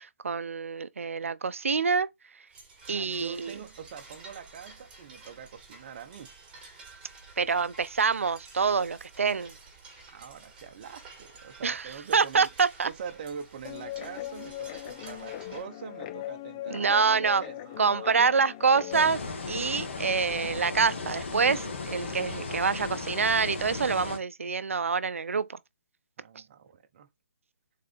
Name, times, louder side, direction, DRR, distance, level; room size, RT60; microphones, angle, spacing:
voice 1, 0.0-2.1 2.9-3.5 7.4-9.5 11.6-12.9 16.7-17.4 17.8-19.2 19.5-25.6, right 5 dB, 85° right, 0.7 m, -26 dB
sound 1, 2.5-15.6, right 3 dB, 15° right, 4.3 m, -51 dB
voice 2, 2.9-6.3 10.1-12.5 12.8-18.4 26.2-27.1, right 7 dB, 40° right, 1.1 m, -44 dB
Guitar, 13.6-19.1, left 14 dB, 25° left, 0.4 m, -39 dB
sound 2, 18.9-24.2, left 4 dB, 60° left, 1.9 m, -36 dB
6.5 x 4.1 x 3.5 m
hypercardioid pair, 155°, 7 cm